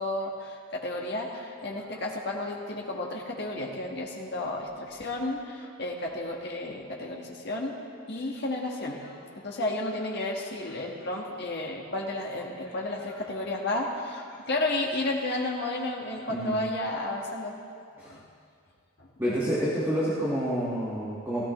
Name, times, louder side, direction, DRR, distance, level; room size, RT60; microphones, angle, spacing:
voice 1, 0.0-7.8 8.1-17.5 18.0-18.2 19.0-19.1, left 2 dB, 50° left, -1 dB, 1.6 m, -32 dB
voice 2, 19.2-21.4, equal, 10° right, -11 dB, 1.8 m, -28 dB
17.0 x 14.5 x 3.2 m, 2.3 s
head